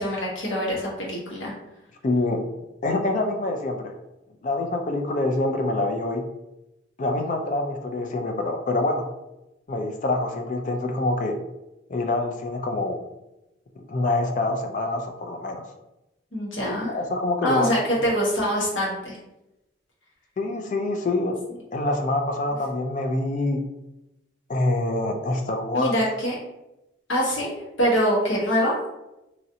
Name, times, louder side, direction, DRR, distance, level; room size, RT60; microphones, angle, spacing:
voice 1, 0.0-1.5 16.3-16.9 17.4-19.2 25.7-26.3 27.1-27.5 27.8-28.7, equal, 75° left, -4 dB, 1.1 m, -24 dB
voice 2, 2.0-2.4 2.8-3.9 4.4-6.2 7.0-9.1 9.7-11.4 11.9-13.0 13.8-15.7 16.6-17.7 20.4-21.4 21.7-23.6 24.5-26.0, left 2 dB, 40° left, 4 dB, 0.3 m, -25 dB
3.0 x 2.6 x 2.7 m, 0.93 s
head